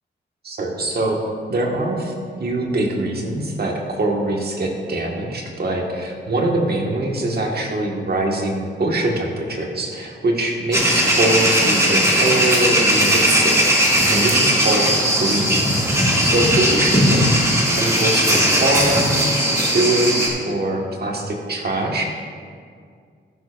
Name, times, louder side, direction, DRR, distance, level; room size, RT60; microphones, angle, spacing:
voice 1, 0.4-1.2 1.5-2.1 2.4-14.9 15.2-17.2 17.7-22.0, right 2 dB, 55° right, 0 dB, 1.7 m, -23 dB
sound 1, 10.7-20.3, equal, 15° right, 2.2 m, -18 dB
14.0 x 11.5 x 2.5 m, 2.1 s
wide cardioid pair, 120°, 19 cm